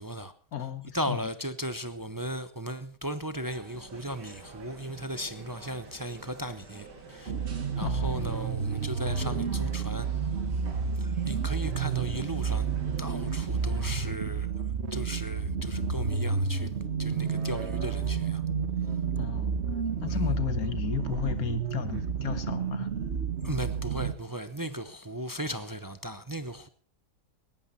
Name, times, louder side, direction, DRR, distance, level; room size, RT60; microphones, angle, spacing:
voice 1, 0.0-0.3 0.9-7.3 7.7-10.1 11.0-12.7 13.0-16.7 17.0-18.4 20.1-20.2 23.4-26.7, equal, 25° right, 0.4 m, -36 dB
voice 2, 0.5-1.3 7.8-8.3 19.2-19.6 20.0-22.9, left 9 dB, 60° left, 1.8 m, -33 dB
sound 1, 3.4-14.1, right 3 dB, 75° right, 3.0 m, -49 dB
sound 2, 7.3-24.1, right 6 dB, 45° right, 1.4 m, -30 dB
18.5 x 14.5 x 4.2 m
omnidirectional pair, 1.8 m